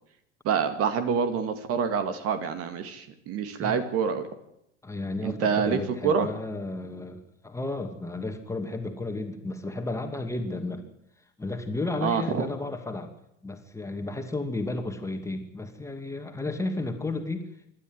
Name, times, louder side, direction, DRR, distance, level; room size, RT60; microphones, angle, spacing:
voice 1, 0.4-4.3 5.2-5.8 6.0-6.3 12.0-12.5, right 6 dB, 35° right, 9 dB, 2.2 m, -26 dB
voice 2, 4.8-10.8 11.4-13.1 13.4-17.5, left 2 dB, 10° left, 5 dB, 2.5 m, -33 dB
26.5 x 12.5 x 9.4 m, 0.81 s
figure-of-eight pair, 85°, 38 cm